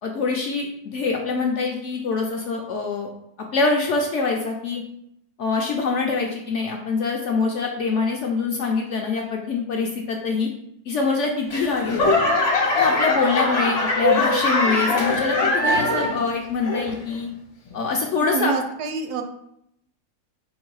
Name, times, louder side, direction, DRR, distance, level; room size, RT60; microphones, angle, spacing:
voice 1, 0.0-3.1 3.5-4.8 5.4-10.5 10.8-12.1 12.8-17.3 17.7-18.5, left 4 dB, 70° left, 1 dB, 0.7 m, -24 dB
Laughter / Clapping / Crowd, 11.5-16.3 16.6-17.1 17.7-17.8, left 2 dB, 45° left, 1.1 m, -21 dB
voice 2, 18.3-19.2, right 5 dB, 85° right, 6 dB, 1.2 m, -26 dB
3.9 x 2.7 x 4.6 m, 0.75 s
omnidirectional pair, 1.6 m